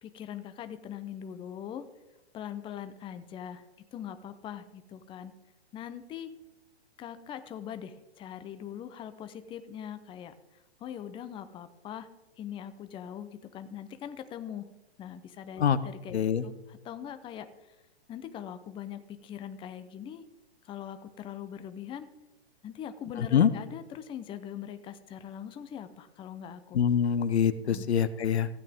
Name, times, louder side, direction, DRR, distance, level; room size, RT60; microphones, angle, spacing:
voice 1, 0.0-1.9 2.3-5.3 5.7-6.3 7.0-12.1 12.4-14.7 15.0-16.2 16.4-17.8 18.1-20.2 20.6-22.1 22.6-26.8 27.7-27.8, left 9 dB, 15° left, 10 dB, 0.6 m, -42 dB
voice 2, 16.1-16.5 23.2-23.5 26.7-28.5, left 8 dB, 75° left, 14 dB, 0.8 m, -25 dB
15.5 x 8.5 x 3.6 m, 1.0 s
hypercardioid pair, 120°, 33 cm